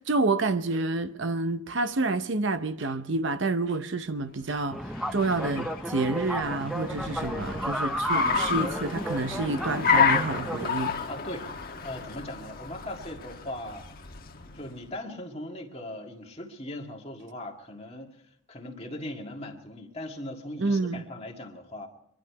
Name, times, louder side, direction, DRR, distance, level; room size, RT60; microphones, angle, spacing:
voice 1, 0.1-4.8 5.1-11.0 20.6-21.0, right 3 dB, 60° right, 0.7 m, -28 dB
Car, 4.5-14.8, left 5 dB, 45° left, 1.3 m, -30 dB
sound 1, 4.7-10.7, equal, ahead, 0.6 m, -33 dB
voice 2, 7.0-7.3 11.1-11.5 11.8-13.9 14.5-21.9, left 1 dB, 30° left, 1.9 m, -39 dB
24.5 x 11.5 x 4.7 m
head